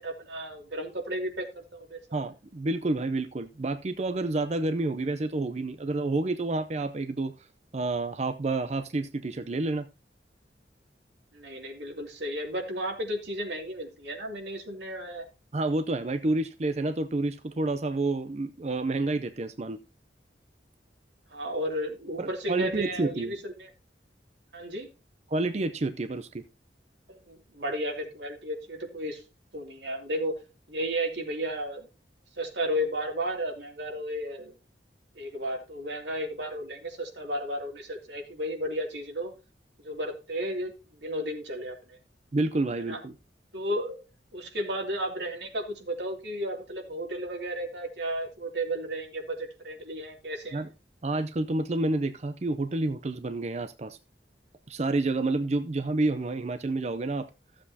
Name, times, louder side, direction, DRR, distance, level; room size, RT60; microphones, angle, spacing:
voice 1, 0.0-2.2 11.3-15.2 21.3-23.7 24.5-24.9 27.1-29.2 29.5-30.3 30.7-31.9 32.4-34.5 35.1-39.3 39.8-42.0 42.9-43.0 43.5-44.0 44.3-50.6, equal, 80° right, 2.6 m, -33 dB
voice 2, 2.1-7.3 7.7-9.9 15.5-19.8 22.2-23.3 25.3-26.4 42.3-43.1 50.5-50.7 51.0-54.0 54.7-57.3, right 2 dB, 40° right, 0.5 m, -29 dB
14.5 x 7.6 x 2.8 m
head